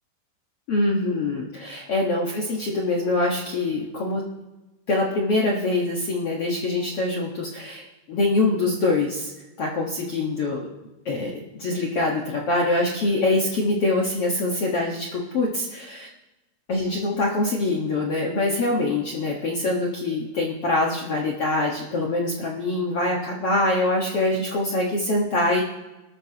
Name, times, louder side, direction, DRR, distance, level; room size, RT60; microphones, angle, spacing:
voice 1, 0.7-4.2 4.9-9.3 9.6-10.7 11.0-16.1 16.7-25.6, left 2 dB, 60° left, -2 dB, 1.6 m, -24 dB
25.5 x 13.0 x 2.9 m, 1.0 s
omnidirectional pair, 4.7 m